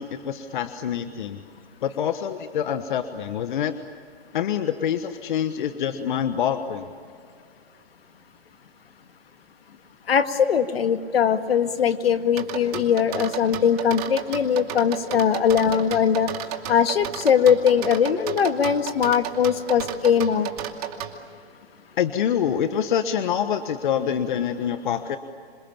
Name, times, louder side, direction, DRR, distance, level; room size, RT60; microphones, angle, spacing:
voice 1, 0.0-1.4 1.8-3.7 4.3-6.9 22.0-25.2, left 9 dB, 50° left, 9 dB, 1.3 m, -26 dB
voice 2, 10.1-16.3 16.7-20.5, left 7 dB, 70° left, 9 dB, 2.0 m, -21 dB
sound 1, 12.4-21.1, right 10 dB, 40° right, 2.5 m, -32 dB
27.0 x 27.0 x 7.3 m, 2.2 s
hypercardioid pair, 155°, 32 cm